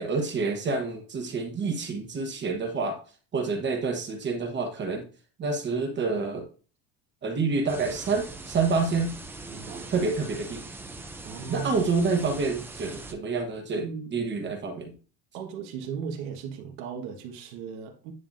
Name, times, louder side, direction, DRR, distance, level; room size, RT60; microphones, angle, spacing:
voice 1, 0.0-3.0 3.3-5.0 5.4-6.5 7.2-9.1 9.9-10.6 11.5-14.9, right 4 dB, 25° right, 1.2 m, -28 dB
sound 1, 7.7-13.1, right 2 dB, 5° right, 0.4 m, -41 dB
voice 2, 9.5-9.9 11.2-11.7 13.8-14.1 15.3-18.1, right 6 dB, 70° right, 1.6 m, -37 dB
9.9 x 5.6 x 2.6 m
cardioid pair, 165°, 41 cm